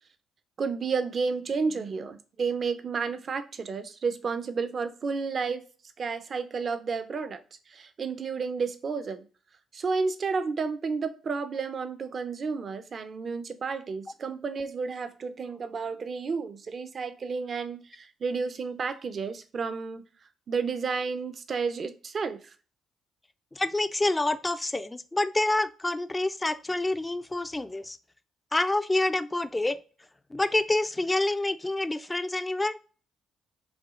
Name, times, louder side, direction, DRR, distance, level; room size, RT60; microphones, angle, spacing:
voice 1, 0.6-5.6 6.0-7.4 7.7-9.2 9.7-20.0 20.5-22.5, right 5 dB, 50° right, 10 dB, 0.7 m, -31 dB
voice 2, 23.5-28.0 28.5-29.8 30.3-32.8, left 2 dB, 15° left, 12 dB, 0.4 m, -27 dB
6.0 x 2.3 x 3.7 m, 0.37 s
supercardioid pair, 65°, 0 cm